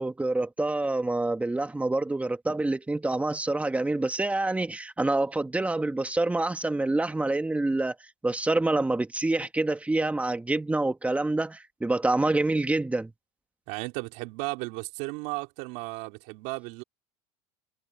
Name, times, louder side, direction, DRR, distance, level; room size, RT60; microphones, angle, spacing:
voice 1, 0.0-8.0 8.2-13.1, right 2 dB, 10° right, 2.0 m, -27 dB
voice 2, 13.7-16.8, right 25 dB, 75° right, 3.8 m, -35 dB
supercardioid pair, 100°, 14 cm